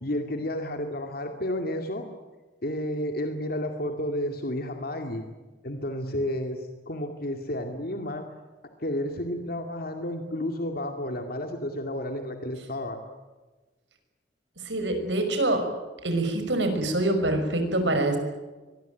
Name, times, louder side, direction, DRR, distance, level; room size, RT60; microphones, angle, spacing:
voice 1, 0.0-2.1 2.6-5.2 5.6-8.3 8.6-13.0, left 1 dB, 60° left, 5 dB, 2.3 m, -31 dB
voice 2, 14.6-15.7 16.0-18.2, right 1 dB, 85° right, 6 dB, 5.8 m, -25 dB
24.0 x 20.5 x 9.2 m, 1.2 s
head